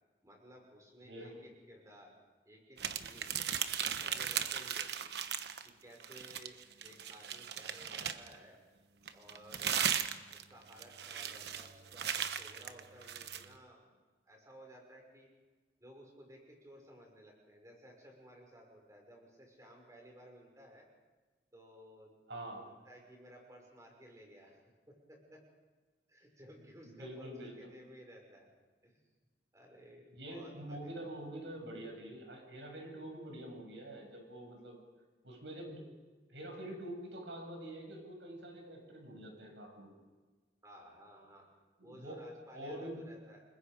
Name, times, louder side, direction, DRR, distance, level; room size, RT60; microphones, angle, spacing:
voice 1, 0.2-2.2 2.4-3.4 3.8-5.1 5.6-8.6 9.1-10.0 10.3-13.9 14.2-15.3 15.8-20.9 21.5-22.5 22.8-25.4 26.1-28.5 28.8-29.0 29.5-31.1 40.6-41.5 41.8-43.4, equal, 20° right, 0 dB, 5.9 m, -56 dB
sound 1, 2.8-5.7 6.0-8.4 9.1-13.5, right 8 dB, 65° right, 1.1 m, -37 dB
voice 2, 22.3-22.7 26.8-27.6 30.1-34.8 35.2-35.9 36.3-39.9 41.8-42.2 42.5-43.0, right 1 dB, 90° right, 2 dB, 7.2 m, -46 dB
29.5 x 21.0 x 5.3 m, 1.3 s
head